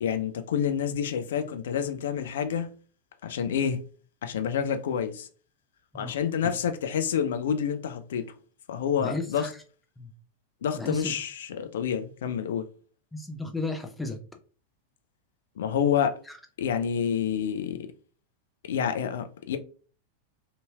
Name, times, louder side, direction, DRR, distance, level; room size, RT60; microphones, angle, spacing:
voice 1, 0.0-2.7 3.2-3.8 4.2-5.3 5.9-8.3 8.7-9.5 10.6-12.7 15.6-16.2 16.6-17.9 18.6-19.6, left 8 dB, 60° left, 0.4 m, -28 dB
voice 2, 9.0-9.5 10.0-10.1 10.7-11.1 13.1-14.2 16.3-16.4, left 2 dB, 5° left, 0.5 m, -34 dB
2.7 x 2.7 x 2.3 m
figure-of-eight pair, 90°, 0 cm